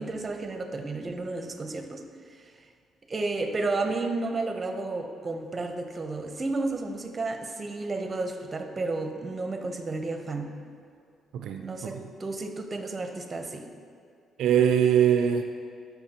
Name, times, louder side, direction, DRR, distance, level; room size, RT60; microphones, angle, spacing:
voice 1, 0.0-2.1 2.4-2.5 3.1-10.5 11.6-13.7, right 3 dB, 30° right, 5 dB, 0.7 m, -32 dB
voice 2, 11.3-12.1 14.4-15.4, right 9 dB, 80° right, 6 dB, 0.3 m, -23 dB
12.0 x 5.8 x 2.9 m, 2.3 s
cardioid pair, 90°, 0 cm